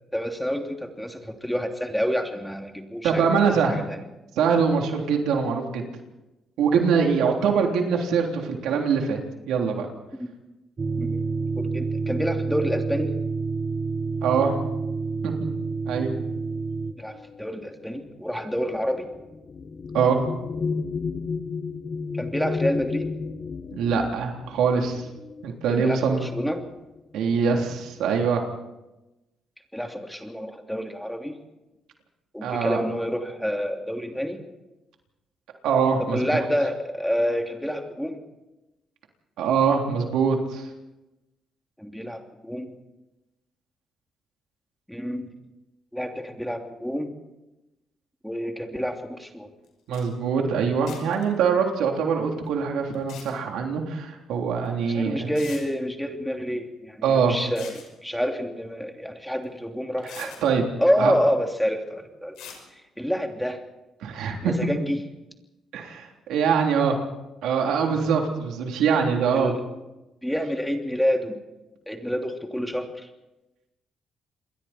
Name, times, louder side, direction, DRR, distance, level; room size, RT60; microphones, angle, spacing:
voice 1, 0.1-3.3 3.7-4.0 10.2-10.3 11.0-11.2 11.6-13.1 17.0-17.1 17.4-19.1 22.1-23.1 25.7-26.6 29.7-31.3 32.3-34.4 36.0-38.2 41.8-42.7 44.9-45.3 45.9-47.1 48.2-49.5 54.8-60.5 60.8-62.4 63.0-63.6 64.4-65.0 69.3-69.6 70.2-71.4 71.9-73.1, equal, ahead, 3 dB, 2.9 m, -28 dB
voice 2, 3.0-3.8 4.3-5.8 6.6-9.2 9.5-9.9 14.2-14.5 15.2-15.5 15.8-16.1 19.9-20.2 23.7-25.0 25.4-26.3 27.1-28.4 32.4-32.8 35.6-36.5 39.4-40.6 49.9-55.3 57.0-57.4 60.2-60.6 61.0-61.1 64.0-64.5 65.7-67.0 67.4-69.5, right 6 dB, 85° right, 2 dB, 3.5 m, -23 dB
sound 1, 10.8-16.9, right 4 dB, 35° right, 1.7 m, -28 dB
sound 2, 17.1-26.1 27.0-27.1 27.5-28.0, left 4 dB, 40° left, 1.2 m, -33 dB
sound 3, 49.6-49.7 49.9-50.0 50.9-51.2 52.9-53.3 54.6-54.7 55.3-55.6 57.4-57.9 59.4-59.5 60.0-60.4 62.3-62.6, left 8 dB, 90° left, 5.9 m, -42 dB
28.0 x 22.0 x 4.5 m, 1.0 s
cardioid pair, 90°, 0 cm